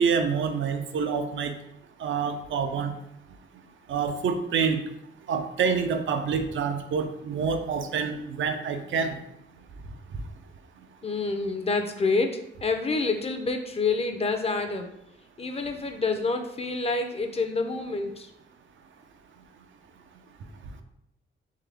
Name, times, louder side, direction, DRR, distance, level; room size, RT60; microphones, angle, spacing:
voice 1, 0.0-1.5 2.0-2.9 3.9-4.8 5.3-9.1, right 6 dB, 80° right, 7 dB, 0.5 m, -27 dB
voice 2, 11.0-14.9 15.4-18.3, left 3 dB, 30° left, 6 dB, 0.4 m, -28 dB
3.8 x 3.4 x 3.3 m, 0.78 s
cardioid pair, 110°, 20 cm